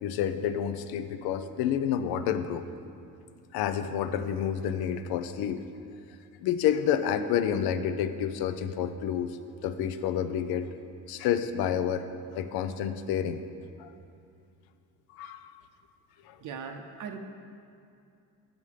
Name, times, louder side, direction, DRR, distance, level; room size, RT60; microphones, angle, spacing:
voice 1, 0.0-2.6 3.5-5.6 6.4-9.4 9.6-10.7 11.1-12.1 12.3-13.4 13.8-13.9 15.1-15.6 16.3-16.4, left 9 dB, 80° left, 10 dB, 0.6 m, -29 dB
voice 2, 16.4-17.2, right 6 dB, 55° right, 4 dB, 0.7 m, -39 dB
7.7 x 7.2 x 4.9 m, 2.5 s
cardioid pair, 110°, 36 cm